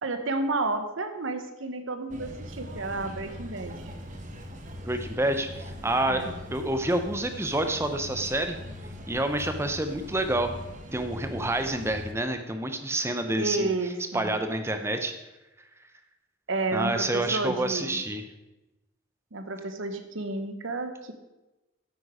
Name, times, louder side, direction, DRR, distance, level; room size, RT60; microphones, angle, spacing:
voice 1, 0.0-3.9 6.1-6.3 13.4-14.3 16.5-18.0 19.3-21.1, right 2 dB, 70° right, 8 dB, 1.0 m, -31 dB
sound 1, 2.1-12.1, equal, 35° right, 1.1 m, -41 dB
voice 2, 4.8-8.6 9.1-10.5 10.9-13.7 14.1-15.1 16.7-18.3, right 1 dB, 10° right, 7 dB, 0.7 m, -28 dB
9.7 x 8.4 x 5.0 m, 1.0 s
head